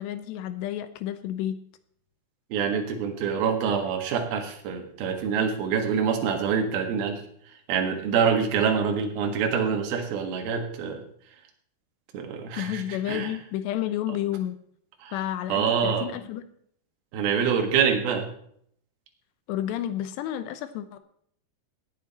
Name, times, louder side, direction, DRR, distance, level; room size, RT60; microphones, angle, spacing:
voice 1, 0.0-1.6 12.6-14.6 15.1-16.4 19.5-21.0, left 11 dB, 90° left, 12 dB, 3.1 m, -31 dB
voice 2, 2.5-7.2 7.7-11.0 12.1-12.8 13.1-13.3 15.0-15.1 15.5-16.1 17.1-18.3, right 6 dB, 65° right, 3 dB, 3.4 m, -25 dB
18.0 x 8.8 x 4.3 m, 0.66 s
omnidirectional pair, 4.8 m